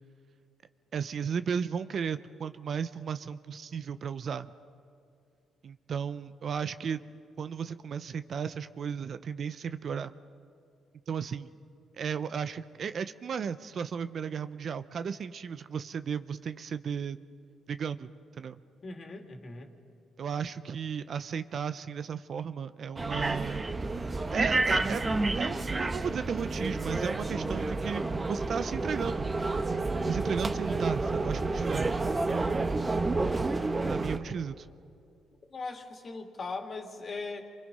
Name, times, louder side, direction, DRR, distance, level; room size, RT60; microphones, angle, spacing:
voice 1, 0.9-4.5 5.6-7.0 7.4-10.1 11.1-11.5 12.0-17.2 17.7-18.1 18.4-18.6 20.2-23.7 24.3-25.0 25.3-29.3 30.1-31.9 33.9-34.7, right 7 dB, 55° right, 12 dB, 0.7 m, -35 dB
voice 2, 18.8-19.7 35.5-37.4, left 3 dB, 40° left, 3 dB, 2.6 m, -39 dB
sound 1, 23.0-34.2, right 3 dB, 25° right, 1.1 m, -30 dB
29.0 x 24.0 x 5.5 m, 2.4 s
cardioid pair, 90°, 0 cm